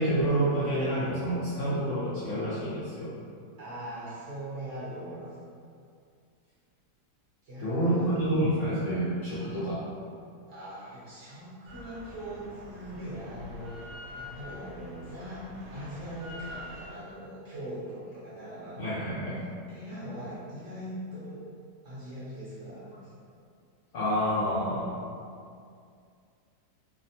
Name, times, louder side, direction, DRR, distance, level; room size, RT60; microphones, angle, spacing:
voice 1, 0.0-3.1 7.6-9.8 18.8-19.4 23.9-24.9, right 1 dB, 70° left, -10 dB, 0.7 m, -28 dB
voice 2, 3.6-5.4 7.4-8.4 10.5-21.4 21.8-23.2, equal, 55° right, -10 dB, 0.9 m, -41 dB
Drill, 11.7-16.9, left 1 dB, 80° right, 1.1 m, -45 dB
2.7 x 2.1 x 2.7 m, 2.3 s
omnidirectional pair, 1.7 m